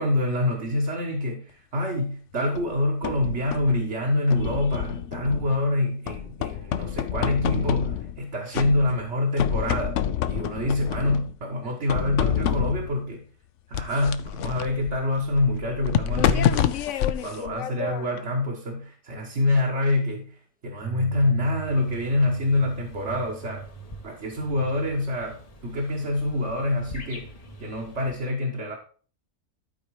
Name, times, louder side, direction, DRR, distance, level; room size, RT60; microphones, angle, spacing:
voice 1, 0.0-10.0 10.3-13.2 13.7-20.3 20.6-23.7 24.0-27.3 27.6-28.8, left 2 dB, 50° right, -1 dB, 1.6 m, -26 dB
sound 1, 2.6-3.8 4.3-5.7 6.1-8.2 8.5-9.1 9.4-11.3 11.9-13.0 13.7-18.2, left 9 dB, 65° left, 0.9 m, -28 dB
sound 2, 20.8-27.6, right 8 dB, 10° right, 0.7 m, -42 dB
sound 3, 21.6-28.2, left 2 dB, 30° left, 0.9 m, -47 dB
12.0 x 4.4 x 4.8 m, 0.41 s
omnidirectional pair, 1.5 m